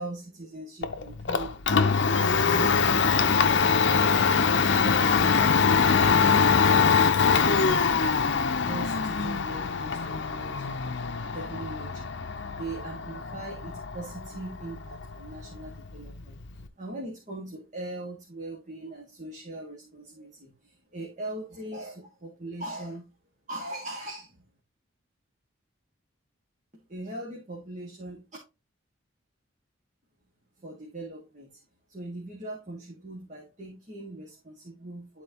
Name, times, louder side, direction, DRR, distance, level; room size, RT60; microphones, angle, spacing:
voice 1, 0.0-4.1 4.5-8.2 8.6-11.0 11.3-23.1 23.5-24.5 26.9-28.2 30.6-31.6 31.9-35.2, right 2 dB, 40° right, -2 dB, 1.7 m, -41 dB
Domestic sounds home sounds, 0.8-16.7, left 5 dB, 60° left, 0.6 m, -24 dB
11.5 x 4.3 x 2.9 m, 0.26 s
head